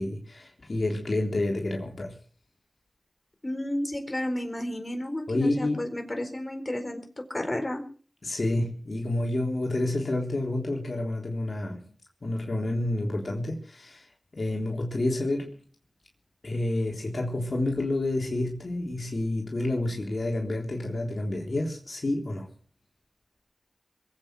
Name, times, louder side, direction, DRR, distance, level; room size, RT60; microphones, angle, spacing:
voice 1, 0.0-2.1 5.3-5.9 8.2-11.8 12.2-14.1 14.3-15.6 16.4-22.5, left 2 dB, 65° left, 3.6 m, -29 dB
voice 2, 3.4-7.0 7.3-7.8, left 1 dB, 35° left, 4.2 m, -32 dB
21.5 x 8.8 x 7.6 m
cardioid pair, 45°, 0 cm